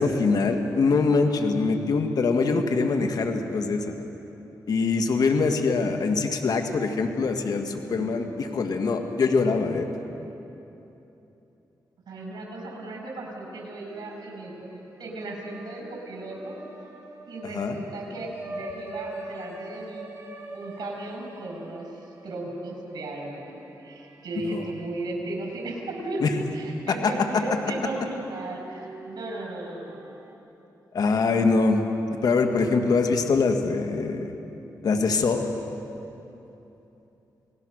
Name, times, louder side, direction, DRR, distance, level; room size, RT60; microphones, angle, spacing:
voice 1, 0.0-4.0 4.7-9.9 17.5-17.8 24.5-24.6 26.2-26.3 27.0-27.1 30.9-31.8 32.2-34.3 34.8-35.5, left 4 dB, 65° left, 5 dB, 1.9 m, -23 dB
voice 2, 7.8-8.4 12.1-16.6 17.3-20.1 20.5-21.9 22.2-23.5 23.8-30.0, right 2 dB, 70° right, 0 dB, 6.2 m, -35 dB
sound 1, 13.9-14.7 15.0-25.3 25.7-25.8 26.9-30.3, right 2 dB, 40° right, 4.1 m, -44 dB
29.5 x 19.0 x 6.5 m, 3.0 s
cardioid pair, 70°, 7 cm